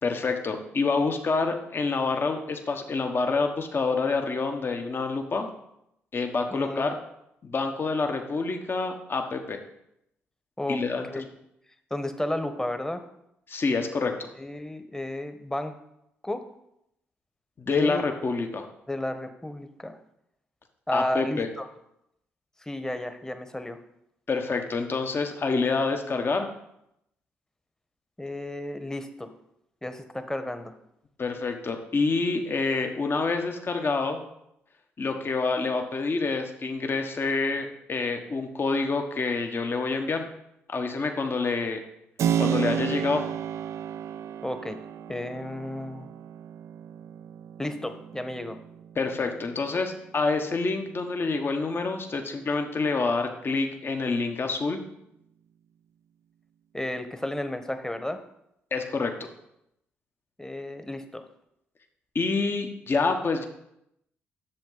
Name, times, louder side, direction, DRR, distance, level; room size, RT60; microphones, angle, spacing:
voice 1, 0.0-5.5 6.1-7.0 7.4-9.6 10.7-11.2 13.5-14.3 17.6-18.7 20.9-21.5 24.3-26.5 31.2-34.2 35.0-40.3 40.7-41.8 42.4-43.2 48.9-54.8 58.7-59.3 62.1-63.4, left 4 dB, 40° left, 5 dB, 1.3 m, -27 dB
voice 2, 6.5-6.9 10.6-10.8 11.1-11.3 11.9-13.0 14.4-15.7 16.2-16.4 17.7-18.0 18.9-20.0 20.9-21.7 22.6-23.8 28.2-29.3 29.8-30.7 44.4-44.8 45.1-46.1 47.6-48.6 56.7-58.2 60.4-61.3, left 1 dB, 10° left, 8 dB, 1.2 m, -32 dB
Keyboard (musical), 42.2-50.7, right 9 dB, 65° right, 0.4 m, -32 dB
10.5 x 7.1 x 4.0 m, 0.81 s
hypercardioid pair, 45°, 6 cm